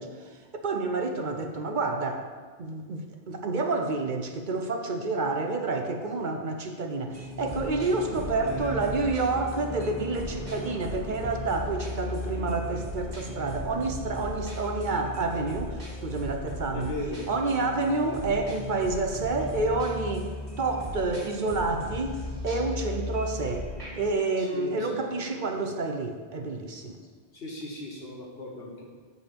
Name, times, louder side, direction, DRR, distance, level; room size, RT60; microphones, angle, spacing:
voice 1, 0.0-2.2 2.6-16.9 17.3-20.3 20.6-23.7 23.9-27.0, right 3 dB, 50° right, 5 dB, 0.7 m, -29 dB
sound 1, 7.1-24.1, left 1 dB, 30° right, 2.8 m, -37 dB
sound 2, 7.8-23.5, left 1 dB, 85° left, 1.7 m, -47 dB
voice 2, 8.4-9.0 16.7-17.2 24.4-25.6 27.3-28.8, left 1 dB, 60° left, -2 dB, 1.7 m, -38 dB
8.6 x 3.5 x 6.7 m, 1.5 s
omnidirectional pair, 1.1 m